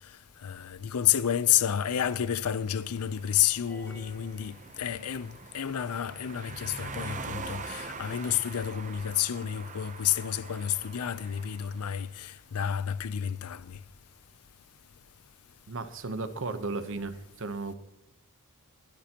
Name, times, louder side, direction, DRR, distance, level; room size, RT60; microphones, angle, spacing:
voice 1, 0.4-13.8, left 10 dB, 85° left, 0.5 m, -30 dB
sound 1, 1.9-12.2, right 4 dB, 35° right, 0.7 m, -44 dB
sound 2, 3.7-5.4, right 1 dB, 10° left, 3.8 m, -54 dB
voice 2, 15.7-17.7, right 3 dB, 60° right, 0.9 m, -35 dB
20.0 x 12.0 x 2.9 m
head